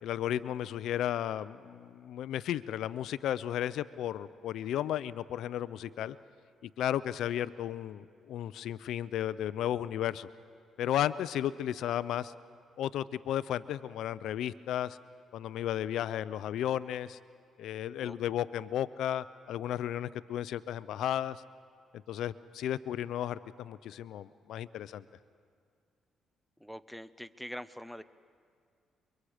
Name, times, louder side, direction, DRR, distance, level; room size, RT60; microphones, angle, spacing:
voice 1, 0.0-6.2 6.6-10.3 10.8-12.3 12.8-15.0 15.3-17.2 17.6-21.4 22.1-25.0, left 11 dB, 80° left, 16 dB, 0.5 m, -34 dB
voice 2, 26.6-28.0, equal, ahead, 13 dB, 0.7 m, -44 dB
29.5 x 23.5 x 5.0 m, 2.2 s
cardioid pair, 90°, 0 cm